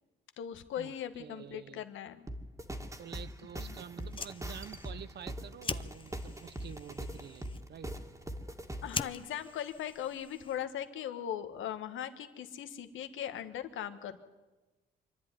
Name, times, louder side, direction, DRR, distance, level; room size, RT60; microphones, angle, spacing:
voice 1, 0.4-2.2 3.6-3.8 4.5-4.6 8.8-14.2, left 10 dB, 80° left, 9 dB, 1.6 m, -39 dB
voice 2, 1.2-1.8 3.0-7.9, right 8 dB, 55° right, 16 dB, 0.9 m, -48 dB
sound 1, 2.3-9.1, right 1 dB, 15° right, 2.1 m, -42 dB
Fire, 3.9-10.9, left 4 dB, 25° left, 0.8 m, -44 dB
25.5 x 11.0 x 9.8 m, 1.2 s
cardioid pair, 90°, 20 cm